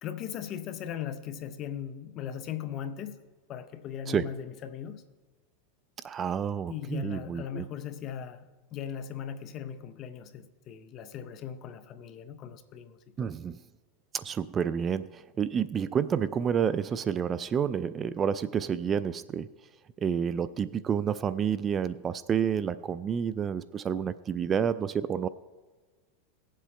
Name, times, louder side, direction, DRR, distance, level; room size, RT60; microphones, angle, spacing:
voice 1, 0.0-3.2 3.5-5.0 6.7-13.3, left 9 dB, 40° left, 0.8 m, -39 dB
voice 2, 6.0-7.6 13.2-13.6 14.1-19.5 20.0-25.3, right 7 dB, 30° right, 0.3 m, -29 dB
18.5 x 7.6 x 3.3 m
hypercardioid pair, 115°, 0 cm